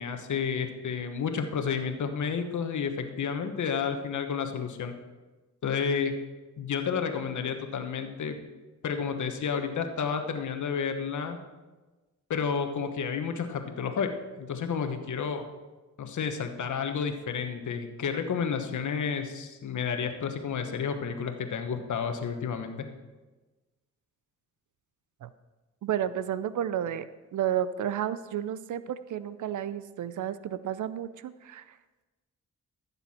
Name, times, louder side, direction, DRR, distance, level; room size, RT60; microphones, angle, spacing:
voice 1, 0.0-4.9 5.6-6.1 6.6-8.4 8.8-11.4 12.3-14.1 14.4-15.5 16.0-22.9, left 6 dB, 70° left, 6 dB, 1.2 m, -31 dB
voice 2, 25.8-27.1 27.3-31.6, right 10 dB, 75° right, 15 dB, 0.6 m, -31 dB
14.5 x 7.0 x 4.3 m, 1.2 s
cardioid pair, 70°, 31 cm